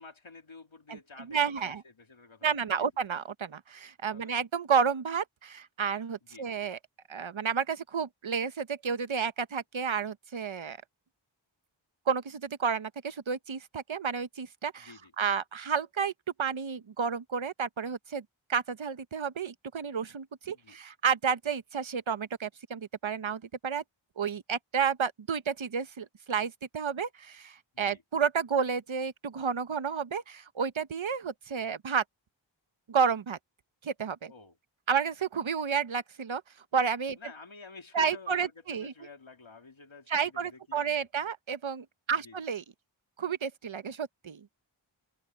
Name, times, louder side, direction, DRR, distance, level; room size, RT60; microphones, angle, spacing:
voice 1, 0.0-2.9 4.1-4.4 6.2-6.5 14.8-15.1 20.5-20.8 27.7-28.0 34.3-34.6 37.1-41.3 42.1-42.4, left 3 dB, 75° left, 3.1 m, -50 dB
voice 2, 1.3-1.8 2.4-6.8 7.1-10.8 12.1-14.9 15.2-16.1 16.4-18.2 18.5-23.8 24.2-32.0 32.9-33.4 33.8-34.3 34.9-36.4 36.7-37.2 37.9-38.9 40.1-42.6 43.2-44.4, right 6 dB, 75° right, 1.0 m, -31 dB
open air
wide cardioid pair, 40°, 48 cm